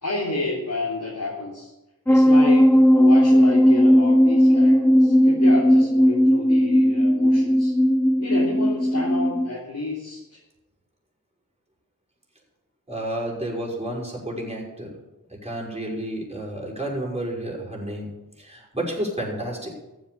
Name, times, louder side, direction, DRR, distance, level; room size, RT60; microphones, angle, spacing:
voice 1, 0.0-1.7 2.1-7.7 8.2-10.4, left 2 dB, 60° left, -5 dB, 3.2 m, -30 dB
sound 1, 2.1-9.5, equal, 5° left, 0.5 m, -17 dB
voice 2, 12.9-14.9 15.4-18.1 18.4-19.7, right 1 dB, 20° right, -3 dB, 5.9 m, -30 dB
14.5 x 8.2 x 7.0 m, 0.99 s
wide cardioid pair, 55°, 35 cm